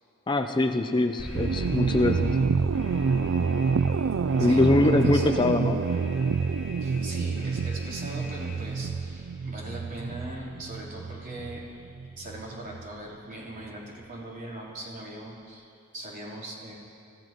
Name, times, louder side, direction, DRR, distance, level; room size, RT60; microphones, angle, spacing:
voice 1, 0.3-2.4 4.4-5.8, left 2 dB, 25° left, 6 dB, 0.5 m, -23 dB
Alarm, 1.2-8.9, equal, 5° right, 4.2 m, -41 dB
sound 1, 1.3-12.8, right 5 dB, 80° right, 0.4 m, -28 dB
voice 2, 4.4-5.4 6.8-16.7, right 1 dB, 40° right, -5 dB, 3.6 m, -40 dB
29.0 x 15.5 x 3.0 m, 2.5 s
head